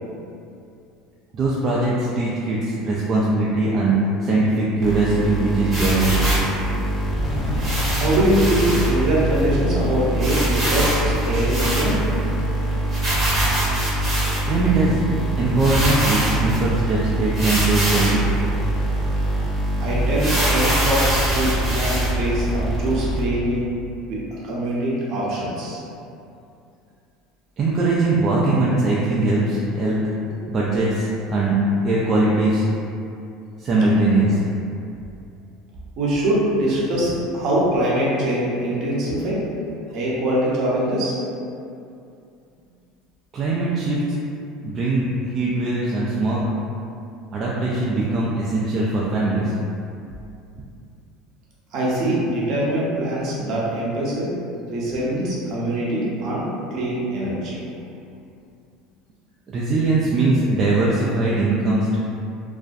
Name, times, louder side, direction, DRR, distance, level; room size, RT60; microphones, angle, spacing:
voice 1, 1.3-4.0 4.2-6.3 14.4-15.0 15.4-18.3 27.6-30.0 30.5-31.6 31.8-32.6 33.6-34.5 43.3-44.2 44.6-46.5 47.3-49.5 59.5-62.0, right 2 dB, 40° right, -6 dB, 0.3 m, -21 dB
sound 1, 4.8-23.6, right 1 dB, 10° left, 0.9 m, -24 dB
sound 2, 5.7-6.5 7.6-8.9 9.4-9.5 9.7-9.8 10.2-12.2 12.9-14.6 15.2-15.3 15.6-16.6 17.3-18.2 18.8-18.9 19.2-19.3 20.1-22.1, right 1 dB, 25° right, 0.9 m, -25 dB
voice 2, 7.9-12.0 19.8-23.6 24.1-25.8 36.0-39.4 39.9-41.2 51.7-54.3 54.7-56.5 56.7-57.6, right 1 dB, 60° right, -6 dB, 0.8 m, -23 dB
2.4 x 2.1 x 2.5 m, 2.6 s
supercardioid pair, 95°, 0 cm